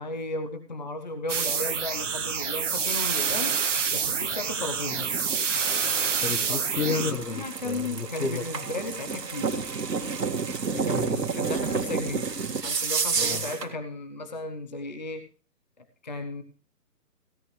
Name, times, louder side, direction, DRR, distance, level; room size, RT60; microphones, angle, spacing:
voice 1, 0.0-3.6 3.9-5.1 6.4-6.6 7.3-9.6 10.7-12.3 12.6-15.2 15.8-16.4, left 2 dB, 30° left, 8 dB, 0.7 m, -35 dB
sound 1, 1.3-7.1, right 6 dB, 50° right, 1.2 m, -27 dB
sound 2, 2.7-13.7, right 5 dB, 80° right, 2.0 m, -31 dB
voice 2, 6.2-8.4 10.9-11.2 13.1-13.5, left 5 dB, 70° left, 10 dB, 1.6 m, -31 dB
16.5 x 11.5 x 3.2 m, 0.39 s
hypercardioid pair, 170°, 48 cm